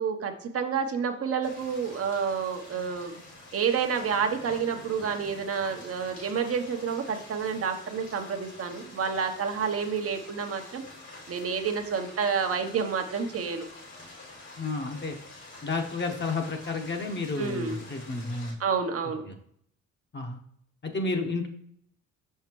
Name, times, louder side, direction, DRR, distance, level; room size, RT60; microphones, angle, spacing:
voice 1, 0.0-3.2 3.5-10.8 11.3-13.7 17.3-17.8 18.6-19.2, right 6 dB, 50° right, 5 dB, 0.9 m, -29 dB
sound 1, 1.4-18.5, left 2 dB, 70° left, 2.5 m, -47 dB
voice 2, 14.6-15.2 15.6-18.6 19.3-19.4 20.1-20.4 20.8-21.5, left 3 dB, 35° left, 3 dB, 1.1 m, -31 dB
5.8 x 5.6 x 3.0 m, 0.68 s
cardioid pair, 90°, 30 cm